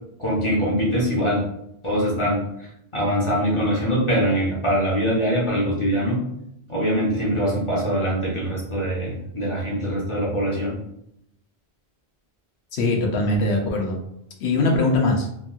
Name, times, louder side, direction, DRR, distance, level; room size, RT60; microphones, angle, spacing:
voice 1, 0.2-1.5 1.8-2.4 2.9-6.2 6.7-10.7, equal, 35° left, -6 dB, 0.7 m, -23 dB
voice 2, 12.7-14.0 14.4-15.3, left 2 dB, 90° left, 1 dB, 1.0 m, -21 dB
3.0 x 2.6 x 2.3 m, 0.76 s
omnidirectional pair, 1.1 m